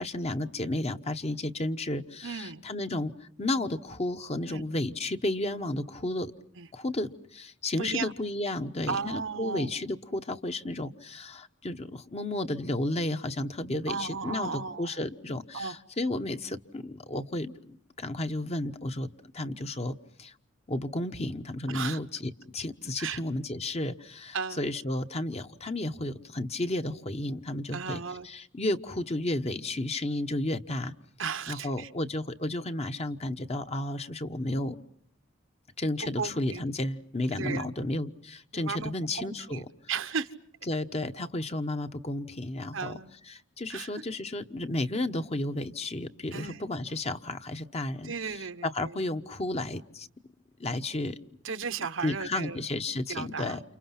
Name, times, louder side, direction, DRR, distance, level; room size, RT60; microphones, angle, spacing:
voice 1, 0.0-6.3 6.7-20.3 20.7-30.9 31.5-34.8 35.8-39.7 40.7-43.0 43.3-48.1 48.6-50.1 50.6-51.2 52.0-53.6, left 1 dB, 35° left, 8 dB, 1.1 m, -32 dB
voice 2, 2.2-2.6 4.5-4.6 6.5-6.7 7.8-8.1 8.9-9.7 13.9-14.9 15.5-15.8 21.7-22.0 23.0-23.2 24.3-24.6 27.7-28.3 31.2-31.9 36.0-36.6 37.3-37.7 38.5-39.6 39.9-40.3 42.7-43.1 43.7-43.9 46.3-46.6 48.0-49.0 51.4-52.6 53.1-53.6, right 5 dB, 75° right, 10 dB, 1.1 m, -35 dB
30.0 x 29.0 x 5.9 m, 0.68 s
head